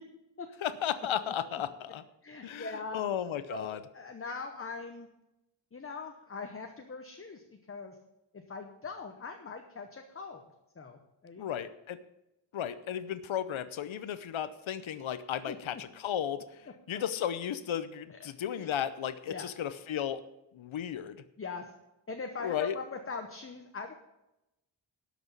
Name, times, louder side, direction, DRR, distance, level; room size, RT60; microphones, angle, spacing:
voice 1, 0.6-2.0 2.4-3.8 11.4-12.0 12.5-20.2 20.5-21.2 22.4-22.7, left 9 dB, 80° left, 12 dB, 0.8 m, -34 dB
voice 2, 2.2-3.0 3.5-5.1 5.7-7.9 8.3-10.4 10.8-11.4 15.5-15.6 16.9-17.0 18.2-18.3 18.6-18.7 19.3-19.5 21.4-21.7 22.1-23.9, left 4 dB, 30° left, 5 dB, 0.9 m, -41 dB
12.5 x 6.1 x 7.3 m, 0.92 s
wide cardioid pair, 180°, 47 cm